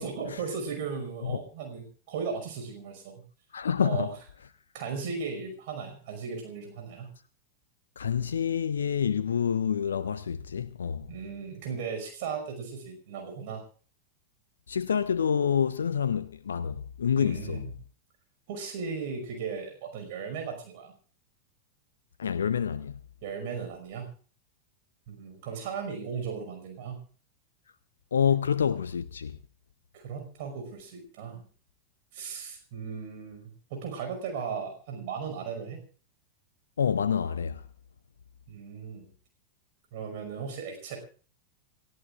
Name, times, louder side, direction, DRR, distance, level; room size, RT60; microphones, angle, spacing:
voice 1, 0.0-3.2 3.8-4.1 4.7-7.1 11.1-13.6 17.2-17.6 18.5-20.9 23.2-24.1 25.1-27.0 29.9-31.4 32.1-35.8 38.5-39.1 39.9-41.0, right 6 dB, 50° right, 5.3 m, -36 dB
voice 2, 3.5-4.1 8.0-11.1 14.7-17.7 22.2-23.0 28.1-29.4 36.8-37.6, left 7 dB, 70° left, 0.6 m, -27 dB
29.5 x 14.0 x 2.5 m
figure-of-eight pair, 90°, 0 cm